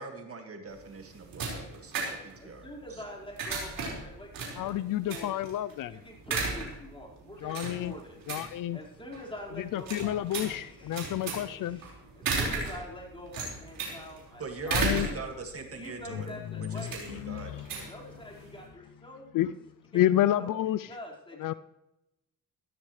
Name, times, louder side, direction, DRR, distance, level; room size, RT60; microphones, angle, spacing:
voice 1, 0.0-3.0 14.4-17.6, right 3 dB, 45° right, 5 dB, 2.1 m, -42 dB
sound 1, 0.7-18.7, right 4 dB, 75° right, 5.0 m, -36 dB
voice 2, 2.4-4.8 5.1-5.5 5.9-8.2 8.7-11.1 11.6-15.5 15.7-16.9 17.8-19.3 19.9-20.1 20.4-21.6, left 1 dB, 15° left, -3 dB, 4.9 m, -46 dB
voice 3, 4.6-6.0 7.4-8.0 8.3-8.8 9.5-11.8 14.7-15.1 16.1-16.2 16.5-17.7 19.3-19.5 19.9-20.9 21.4-21.5, left 13 dB, 70° left, 15 dB, 0.5 m, -30 dB
16.5 x 13.0 x 3.3 m, 0.93 s
cardioid pair, 85°, 34 cm